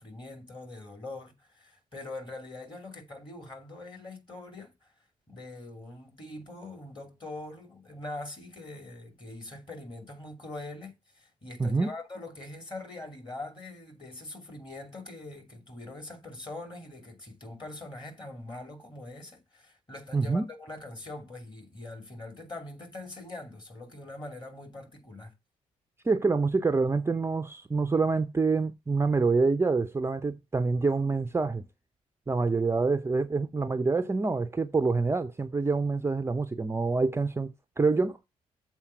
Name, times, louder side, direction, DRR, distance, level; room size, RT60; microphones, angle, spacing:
voice 1, 0.0-4.9 5.3-25.3, left 2 dB, 25° left, 2.8 m, -43 dB
voice 2, 20.1-20.4 26.0-31.6 32.3-37.5 37.8-38.2, right 4 dB, 15° right, 0.6 m, -26 dB
7.2 x 4.4 x 6.8 m
figure-of-eight pair, 40°, 17 cm